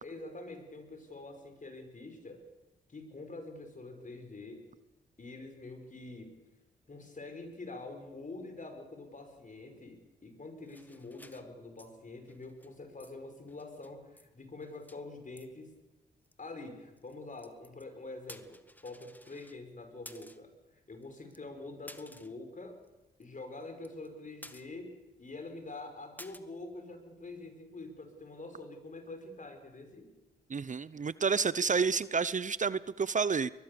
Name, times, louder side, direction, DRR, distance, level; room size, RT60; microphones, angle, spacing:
voice 1, 0.0-2.4 2.9-4.7 5.2-6.4 6.9-15.7 16.4-20.5 20.9-22.8 23.2-30.1, left 2 dB, 45° left, 6 dB, 5.5 m, -46 dB
sound 1, 10.7-11.9 12.2-12.7 13.0-13.1 13.4-14.3 14.5-15.0 15.4-15.5 16.2-16.3 17.0-17.8 18.2-19.6 20.1-20.5 21.0-21.1 21.3-21.4 21.9-22.5 22.8-22.9 23.2-23.3 23.6-24.1 24.4-25.0 25.3-25.4 26.2-26.4, left 1 dB, 10° left, 1.7 m, -53 dB
voice 2, 30.5-33.5, right 5 dB, 45° right, 18 dB, 0.7 m, -30 dB
22.0 x 21.0 x 6.9 m, 1.0 s
supercardioid pair, 45°, 18 cm